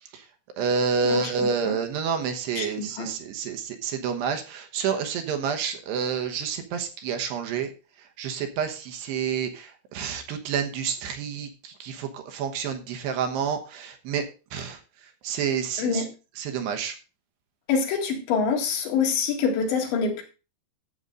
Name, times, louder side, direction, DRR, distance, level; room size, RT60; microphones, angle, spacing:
voice 1, 0.6-7.7 8.2-14.3 14.5-14.8 15.2-16.0 16.4-16.9, right 6 dB, 70° right, 5 dB, 3.0 m, -29 dB
voice 2, 2.6-3.1 15.8-16.1 17.7-20.2, left 5 dB, 75° left, 2 dB, 4.0 m, -26 dB
12.5 x 7.9 x 3.8 m, 0.32 s
omnidirectional pair, 5.4 m